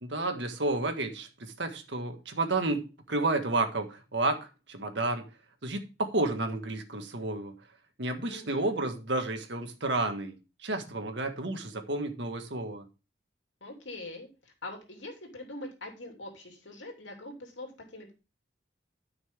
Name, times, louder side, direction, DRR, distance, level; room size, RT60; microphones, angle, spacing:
voice 1, 0.0-5.3 5.6-7.6 8.0-12.9, right 2 dB, 75° right, 1.8 m, -31 dB
voice 2, 8.2-8.8 13.6-18.1, left 2 dB, 85° left, 2.9 m, -43 dB
13.0 x 6.0 x 3.6 m
head